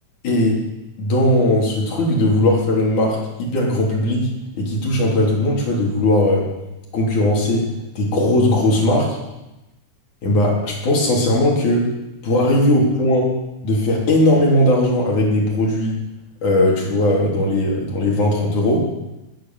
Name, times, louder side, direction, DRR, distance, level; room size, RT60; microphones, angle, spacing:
voice 1, 0.2-0.6 1.0-4.3 4.5-6.5 6.9-7.7 8.0-9.2 10.2-11.9 12.2-13.3 13.6-16.0 16.4-18.9, left 1 dB, 50° left, -2 dB, 4.5 m, -18 dB
19.5 x 9.3 x 7.6 m, 0.99 s
omnidirectional pair, 4.8 m